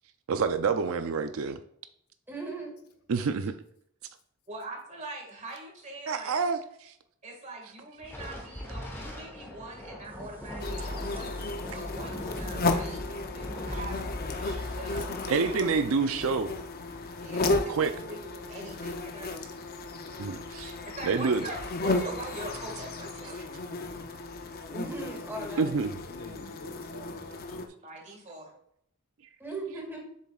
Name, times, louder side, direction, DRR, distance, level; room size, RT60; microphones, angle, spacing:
voice 1, 0.3-1.6 3.1-3.5 6.1-6.9 15.3-16.5 17.7-17.9 20.2-20.7 21.1-21.4 25.6-26.0, right 5 dB, 65° right, 9 dB, 0.5 m, -27 dB
voice 2, 2.3-2.7 11.0-11.2 11.7-11.8 24.7-25.7 29.4-30.0, right 2 dB, 10° right, -1 dB, 2.1 m, -38 dB
voice 3, 4.5-6.4 7.2-14.1 14.8-15.9 16.2-16.3 17.2-19.4 20.9-23.4 27.8-28.5, right 2 dB, 35° right, 1 dB, 1.9 m, -43 dB
Thunder, 8.0-16.8, equal, 10° left, 1.2 m, -42 dB
sound 1, 10.6-27.7, left 2 dB, 45° left, 0.6 m, -34 dB
voice 4, 23.7-24.1 26.0-27.8, left 2 dB, 90° left, 4 dB, 1.2 m, -46 dB
7.3 x 7.2 x 2.4 m, 0.70 s
head